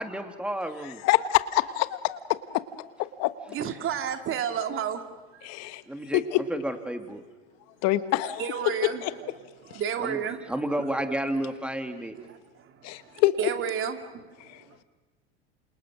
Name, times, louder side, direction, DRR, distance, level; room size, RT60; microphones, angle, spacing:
voice 1, 0.0-1.0 5.9-6.2 6.5-7.2 10.0-10.2 10.5-12.1, right 1 dB, 5° right, 2.6 m, -31 dB
voice 2, 0.8-2.2 2.5-2.9 3.2-3.3 5.4-5.8 6.1-6.4 7.8-8.7 9.0-9.1 9.7-9.8 12.8-13.3 14.4-14.8, left 16 dB, 50° left, 1.3 m, -26 dB
voice 3, 3.5-5.0 5.3-5.5 8.4-9.3 9.7-11.2 12.2-14.3 14.6-14.8, right 8 dB, 40° right, 2.6 m, -32 dB
28.0 x 28.0 x 6.3 m
hypercardioid pair, 85°, 32 cm